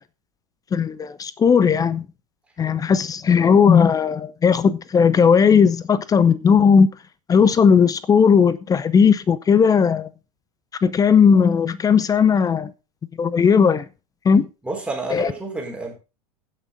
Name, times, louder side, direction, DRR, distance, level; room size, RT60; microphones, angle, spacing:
voice 1, 0.7-2.1 2.6-6.9 7.3-10.1 10.8-12.7 13.2-13.8 14.2-14.5 15.1-15.3, left 6 dB, 20° left, 0.6 m, -16 dB
voice 2, 14.6-15.9, right 3 dB, 5° right, 4.0 m, -29 dB
15.5 x 6.3 x 3.6 m
figure-of-eight pair, 85°, 19 cm